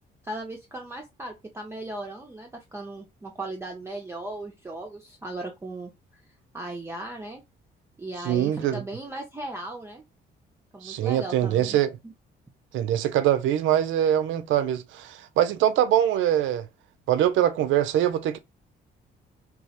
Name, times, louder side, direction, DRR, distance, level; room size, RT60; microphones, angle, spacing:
voice 1, 0.2-5.9 6.5-7.4 8.0-10.0 10.7-11.8, right 2 dB, 15° right, 0.4 m, -37 dB
voice 2, 8.2-8.8 10.8-12.0 12.7-16.7 17.1-18.4, right 11 dB, 80° right, 0.4 m, -23 dB
2.3 x 2.0 x 2.7 m
cardioid pair, 90°, 20 cm